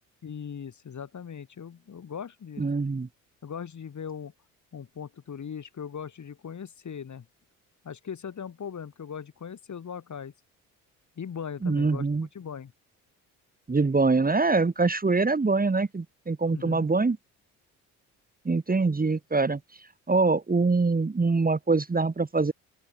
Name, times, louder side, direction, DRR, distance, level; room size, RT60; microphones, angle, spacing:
voice 1, 0.2-2.6 3.4-4.3 4.7-7.3 7.8-10.3 11.2-12.1 12.3-12.7 16.5-16.9, left 7 dB, 45° left, 4.1 m, -39 dB
voice 2, 2.6-3.1 11.6-12.3 13.7-17.2 18.5-19.6 20.1-22.5, right 3 dB, 20° right, 2.1 m, -24 dB
open air
hypercardioid pair, 50°, 42 cm